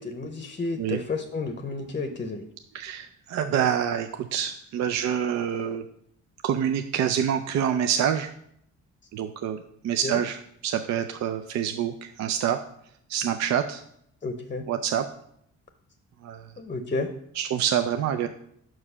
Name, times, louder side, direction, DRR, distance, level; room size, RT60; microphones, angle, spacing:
voice 1, 0.0-2.5 10.0-10.2 14.2-14.7 16.6-17.1, left 3 dB, 25° left, 7 dB, 0.7 m, -31 dB
voice 2, 2.7-5.8 6.4-8.3 9.1-12.6 13.1-13.8 14.7-15.0 16.2-16.5 17.3-18.3, right 9 dB, 65° right, 7 dB, 0.5 m, -26 dB
6.0 x 4.7 x 5.5 m, 0.70 s
cardioid pair, 90°, 30 cm